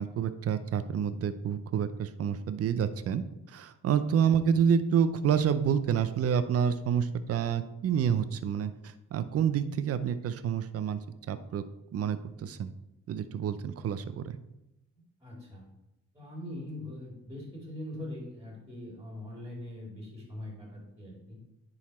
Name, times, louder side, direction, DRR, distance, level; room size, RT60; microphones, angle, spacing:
voice 1, 0.0-3.2 3.5-8.7 9.1-11.0 11.3-11.6 11.9-12.7 13.1-14.4, right 8 dB, 50° right, 12 dB, 0.6 m, -28 dB
voice 2, 15.2-15.7 16.1-21.4, left 1 dB, 10° right, -2 dB, 2.7 m, -42 dB
9.9 x 4.1 x 4.3 m, 0.91 s
cardioid pair, 90°, 30 cm